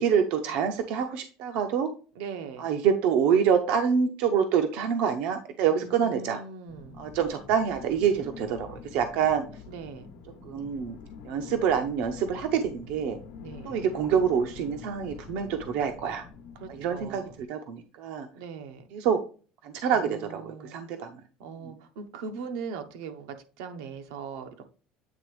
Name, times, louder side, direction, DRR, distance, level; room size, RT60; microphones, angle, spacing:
voice 1, 0.0-1.9 2.6-6.4 7.0-9.5 10.4-11.0 11.2-13.2 13.6-16.2 16.7-18.3 18.9-19.2 19.6-21.1 21.6-21.7, right 7 dB, 55° right, 7 dB, 0.6 m, -26 dB
voice 2, 2.1-2.7 5.7-7.0 9.7-10.1 13.4-13.8 16.5-17.3 18.3-18.9 19.9-21.1 21.4-24.7, right 5 dB, 85° right, 7 dB, 1.0 m, -40 dB
sound 1, 6.7-17.5, left 6 dB, 70° left, 0.9 m, -46 dB
8.5 x 3.4 x 3.2 m, 0.37 s
cardioid pair, 175°, 2 cm